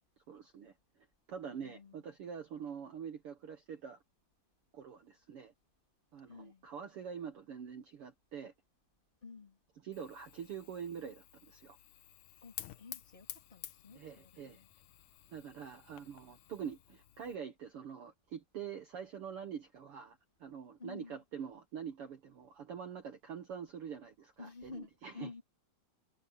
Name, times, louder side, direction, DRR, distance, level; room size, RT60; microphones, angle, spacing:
voice 1, 0.3-0.7 1.3-4.0 4.7-5.5 6.1-8.5 9.8-11.8 13.9-14.6 15.3-25.3, right 7 dB, 85° right, 1.2 m, -45 dB
voice 2, 1.5-1.9 6.3-6.6 9.2-9.6 12.4-14.7 20.8-21.2 24.4-25.4, left 4 dB, 15° left, 2.2 m, -51 dB
Fire, 9.9-17.4, left 13 dB, 70° left, 2.0 m, -52 dB
omnidirectional pair, 4.4 m